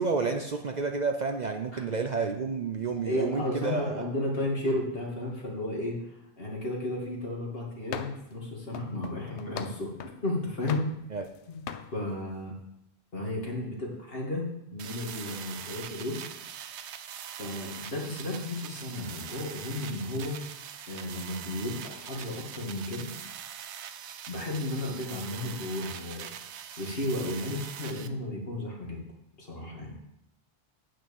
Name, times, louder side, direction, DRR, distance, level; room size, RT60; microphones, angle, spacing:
voice 1, 0.0-4.0 11.1-11.3, right 4 dB, 45° right, 5 dB, 0.7 m, -30 dB
voice 2, 3.0-9.9 10.2-10.8 11.5-11.6 11.9-12.6 13.1-16.2 17.4-20.4 20.9-23.1 24.3-26.3 26.8-29.1 29.4-30.0, left 1 dB, 60° left, -2 dB, 2.5 m, -33 dB
sound 1, 7.9-8.3 8.7-10.2 10.7-11.4 11.7-11.9, left 8 dB, 85° left, 1.0 m, -40 dB
sound 2, 14.8-28.1, right 9 dB, 85° right, 1.0 m, -42 dB
8.8 x 6.1 x 7.1 m, 0.84 s
omnidirectional pair, 1.1 m